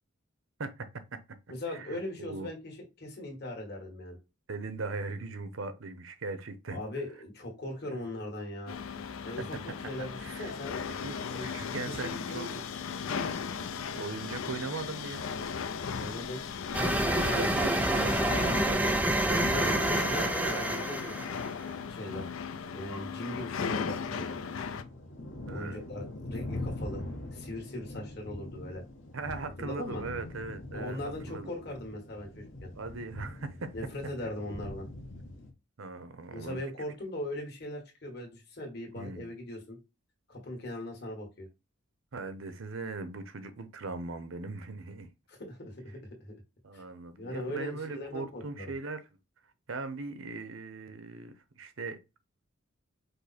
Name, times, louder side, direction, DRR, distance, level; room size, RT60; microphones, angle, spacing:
voice 1, 0.6-1.4 1.7-2.5 4.5-6.8 7.9-8.0 9.4-10.5 11.0-11.1 11.4-12.6 13.9-15.2 17.1-20.9 25.5-25.8 29.1-31.0 31.3-31.5 32.7-33.7 35.8-36.6 39.0-39.3 42.1-45.1 46.6-49.0 49.7-52.0, right 3 dB, 80° right, 0.7 m, -39 dB
voice 2, 1.5-4.2 6.7-8.8 9.2-10.8 11.3-12.6 15.9-16.4 19.3-21.2 21.9-22.3 22.7-24.3 25.5-27.0 27.3-28.8 29.6-30.0 30.7-32.7 33.7-34.8 36.3-39.8 40.3-41.5 45.3-46.3 46.7-46.8 47.2-48.7, left 1 dB, 50° left, 1.7 m, -39 dB
sound 1, 8.7-24.8, left 6 dB, 85° left, 0.5 m, -37 dB
sound 2, 16.7-21.5, right 1 dB, 5° right, 0.4 m, -28 dB
sound 3, 22.3-35.5, left 1 dB, 70° left, 1.1 m, -43 dB
5.3 x 2.1 x 4.1 m
head